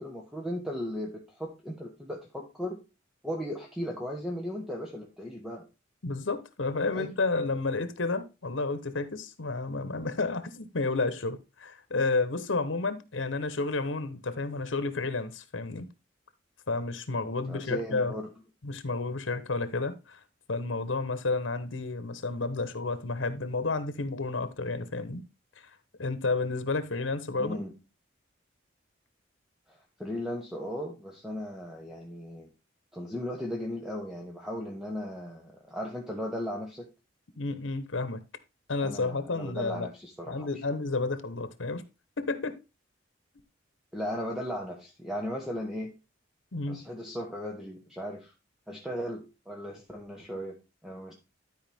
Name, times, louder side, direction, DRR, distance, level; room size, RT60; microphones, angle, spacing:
voice 1, 0.0-2.8 3.2-5.6 6.9-7.1 17.5-18.3 27.4-27.8 29.7-32.5 32.9-36.9 38.8-40.5 43.9-45.9 46.7-48.3 48.7-51.1, equal, 5° right, 1.2 m, -37 dB
voice 2, 6.0-15.9 16.7-18.1 18.6-20.2 20.5-25.2 26.0-27.6 37.4-38.2 38.7-39.9 40.3-41.8 42.2-42.6 46.5-46.8, left 3 dB, 85° left, 1.0 m, -31 dB
12.0 x 4.8 x 3.5 m
head